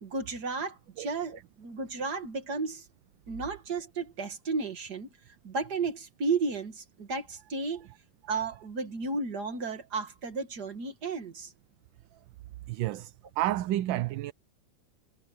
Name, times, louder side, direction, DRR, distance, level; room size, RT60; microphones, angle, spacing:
voice 1, 0.0-2.8 3.3-5.1 5.4-7.9 8.3-11.5, right 4 dB, 55° right, 2.6 m, -33 dB
voice 2, 12.7-14.3, right 15 dB, 80° right, 1.3 m, -30 dB
omnidirectional pair, 2.1 m